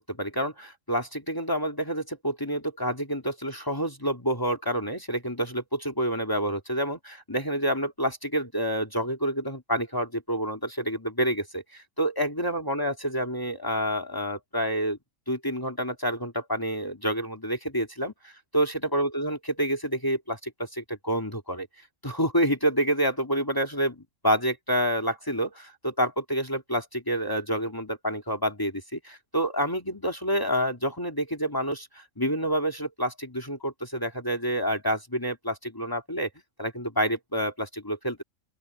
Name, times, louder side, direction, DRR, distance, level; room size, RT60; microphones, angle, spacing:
voice 1, 0.0-15.0 15.3-21.7 22.0-36.3 36.6-38.2, equal, 15° left, 2.5 m, -28 dB
open air
omnidirectional pair, 1.5 m